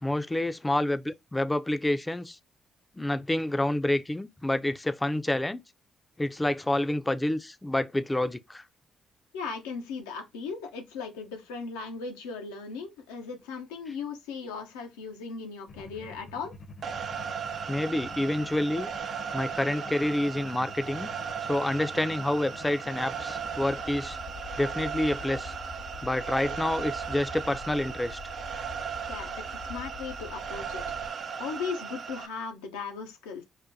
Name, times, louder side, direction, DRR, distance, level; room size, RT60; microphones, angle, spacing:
voice 1, 0.0-2.4 2.9-5.6 6.2-8.6 17.7-18.9 19.3-21.1 21.4-24.2 24.6-25.5 26.0-28.2, left 1 dB, 15° left, 0.4 m, -28 dB
voice 2, 9.3-16.5 29.1-30.8 31.4-33.4, left 5 dB, 90° left, 0.6 m, -37 dB
sound 1, 15.7-31.1, left 4 dB, 50° left, 0.7 m, -46 dB
sound 2, 16.8-32.3, right 6 dB, 55° right, 0.4 m, -37 dB
5.0 x 2.2 x 2.6 m
hypercardioid pair, 50°, 0 cm